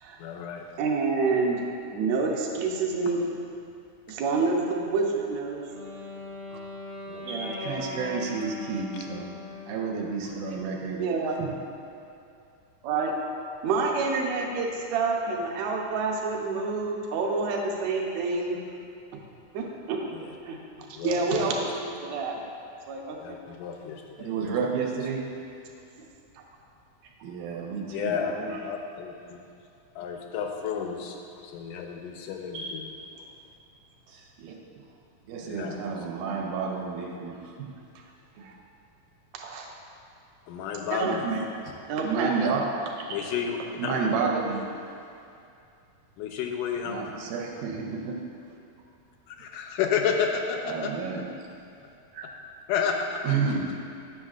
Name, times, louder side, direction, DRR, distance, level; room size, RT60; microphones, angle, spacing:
voice 1, 0.2-0.7 3.1-3.2 7.1-7.2 20.1-20.3 20.8-21.5 23.2-24.9 27.9-29.4 30.0-32.9 35.4-35.8 40.5-41.3 42.4-42.5 43.1-43.6 43.8-44.1 46.2-47.1 49.3-50.9 52.7-53.2, left 7 dB, 85° left, 3 dB, 2.1 m, -31 dB
voice 2, 0.8-3.3 4.1-5.7 7.2-7.5 10.9-11.4 12.8-13.2 13.6-18.6 19.5-20.0 20.4-20.6 21.0-22.4 22.9-23.4 39.3-39.7 40.9-41.1 41.9-42.5 52.1-52.3, right 4 dB, 75° right, 0 dB, 1.8 m, -28 dB
Wind instrument woodwind instrument, 5.4-10.0, left 2 dB, 65° left, 0.6 m, -39 dB
voice 3, 7.3-9.3 9.7-11.0 11.4-11.5 24.2-25.2 27.2-28.6 32.5-33.1 34.1-34.5 35.2-38.0 38.4-38.6 41.0-41.4 42.0-42.6 43.1-43.2 43.8-44.7 46.9-48.2 50.6-51.3 53.2-53.8, right 5 dB, 90° right, -1 dB, 2.2 m, -31 dB
9.8 x 6.3 x 2.4 m, 2.5 s
omnidirectional pair, 3.7 m